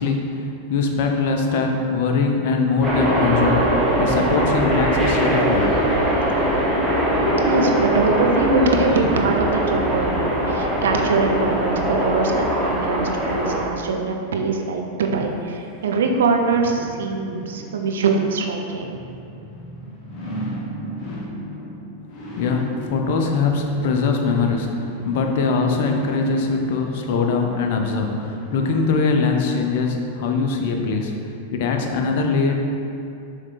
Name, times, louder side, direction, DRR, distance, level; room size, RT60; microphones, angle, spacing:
voice 1, 0.0-5.7 6.5-6.6 22.3-32.6, left 4 dB, 50° left, 3 dB, 0.7 m, -22 dB
sound 1, 2.8-13.6, right 1 dB, 5° right, 1.5 m, -21 dB
voice 2, 7.4-19.0, right 4 dB, 60° right, 2 dB, 0.6 m, -23 dB
sound 2, 15.7-29.6 30.0-30.1, right 1 dB, 35° left, 1.3 m, -37 dB
7.3 x 3.5 x 4.1 m, 2.6 s
figure-of-eight pair, 90°, 0 cm